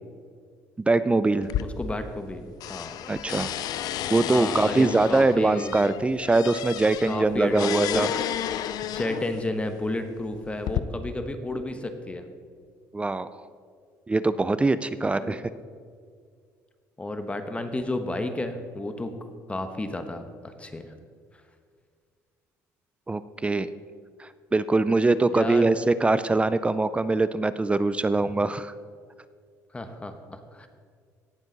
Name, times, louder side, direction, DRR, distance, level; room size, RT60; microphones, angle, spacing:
voice 1, 0.9-1.5 3.1-3.5 4.1-8.1 12.9-13.3 14.1-15.4 23.1-23.7 24.2-28.7, right 3 dB, 15° right, 15 dB, 0.4 m, -23 dB
sound 1, 1.4-2.3 2.6-9.4 10.2-10.8, left 11 dB, 65° left, 0.5 m, -32 dB
voice 2, 1.6-3.0 4.3-5.8 7.1-8.1 8.9-12.3 15.1-15.4 17.0-19.2 19.5-20.9 25.3-25.7 29.7-30.7, left 2 dB, 15° left, 8 dB, 1.1 m, -32 dB
17.5 x 7.1 x 4.0 m, 2.1 s
supercardioid pair, 90°, 7 cm